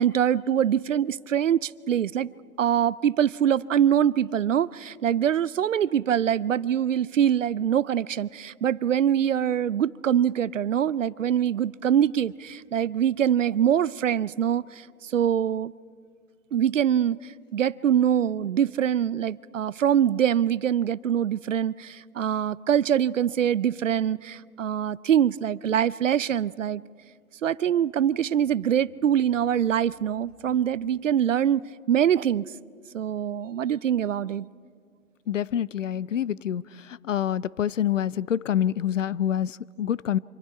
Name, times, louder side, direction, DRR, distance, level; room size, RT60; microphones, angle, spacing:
voice 1, 0.0-2.3 2.6-15.7 16.5-17.2 17.5-26.8 27.4-32.5 32.9-34.5, right 9 dB, 60° right, 0.5 m, -24 dB
voice 2, 35.3-40.2, left 10 dB, 55° left, 0.5 m, -27 dB
26.0 x 26.0 x 4.7 m
hypercardioid pair, 155°, 45 cm